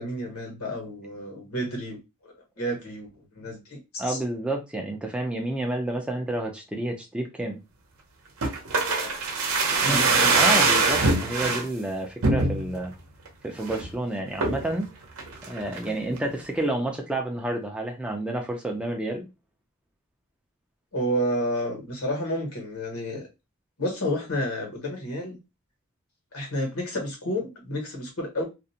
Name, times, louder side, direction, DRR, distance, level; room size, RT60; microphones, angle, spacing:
voice 1, 0.0-2.0 2.6-4.2 8.9-9.2 9.8-10.4 20.9-23.3 23.8-25.4 26.3-28.5, equal, 80° left, 1.2 m, -30 dB
voice 2, 4.0-7.6 9.9-12.9 13.4-14.9 15.5-19.3, right 1 dB, 5° right, 0.4 m, -30 dB
sound 1, 8.4-11.7 12.2-12.8 13.3-13.4 13.6-13.9 14.4-14.7 15.2-15.9 16.2-16.3, right 3 dB, 70° right, 0.7 m, -23 dB
2.5 x 2.1 x 2.7 m
head